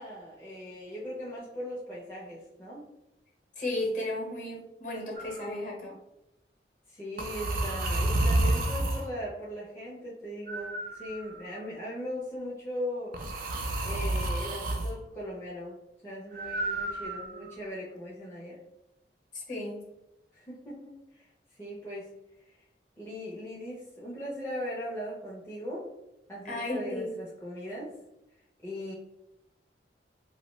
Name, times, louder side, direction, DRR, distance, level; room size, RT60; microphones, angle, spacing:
voice 1, 0.0-2.8 6.9-13.2 13.8-15.8 16.0-18.6 20.3-21.3 21.5-22.1 22.5-22.6 23.0-25.9 26.3-27.9 28.6-28.9, equal, 15° left, -7 dB, 0.4 m, -39 dB
voice 2, 3.6-6.0 19.3-19.8 26.4-27.1, left 1 dB, 45° left, -2 dB, 0.8 m, -34 dB
sound 1, 5.2-5.5 7.2-9.1 10.5-11.6 13.1-14.9 16.3-17.5, right 1 dB, 50° right, 0.4 m, -30 dB
2.6 x 2.1 x 3.0 m, 0.89 s
head